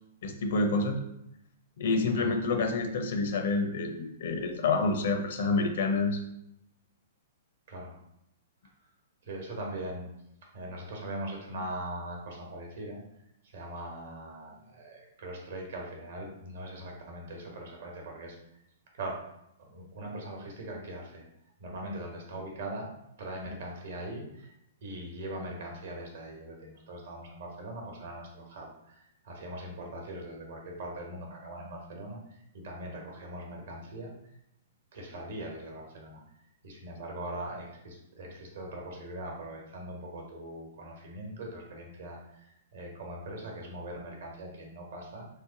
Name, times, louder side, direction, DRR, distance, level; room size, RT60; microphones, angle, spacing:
voice 1, 0.2-1.0 1.8-6.2, left 3 dB, 65° left, 4 dB, 0.6 m, -28 dB
voice 2, 7.7-8.0 9.2-10.1 10.5-13.0 13.4-18.4 18.9-19.2 19.7-21.2 21.6-22.9 23.2-24.5 24.8-34.1 34.9-36.2 36.6-45.3, right 1 dB, 65° right, 0 dB, 1.0 m, -41 dB
3.3 x 2.1 x 3.7 m, 0.80 s
hypercardioid pair, 120°, 0 cm